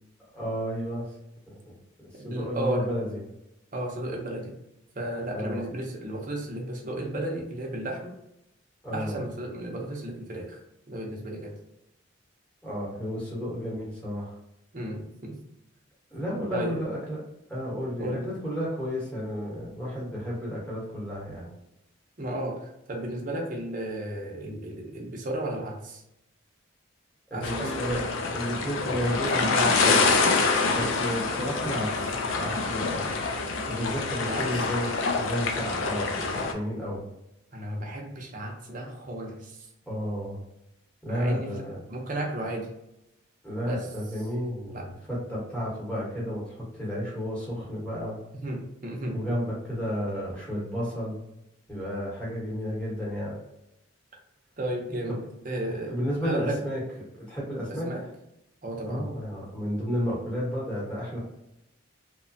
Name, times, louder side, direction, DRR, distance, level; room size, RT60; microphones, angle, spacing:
voice 1, 0.3-1.0 1.5-1.7 2.0-3.2 5.3-5.6 8.8-9.2 12.6-14.3 16.1-17.2 17.5-21.5 27.3-28.0 28.3-30.1 30.7-33.2 33.7-34.9 35.2-37.0 39.9-40.4 41.0-41.8 43.4-48.2 49.1-51.2 51.7-53.4 55.1-55.2 55.9-56.8 57.2-57.9 58.9-61.2, equal, 5° left, -6 dB, 1.0 m, -32 dB
voice 2, 2.1-2.9 3.7-4.5 4.9-8.1 8.9-10.6 10.9-11.6 14.7-15.4 16.5-16.8 18.0-18.3 22.2-26.0 27.3-27.9 34.2-34.7 37.5-39.7 41.1-42.7 43.6-43.9 44.7-44.9 48.4-49.4 54.6-56.6 57.7-58.0 58.6-59.2, right 1 dB, 40° right, 0 dB, 0.6 m, -34 dB
sound 1, 27.4-36.5, left 4 dB, 65° left, 0.4 m, -26 dB
2.9 x 2.1 x 2.6 m, 0.85 s
head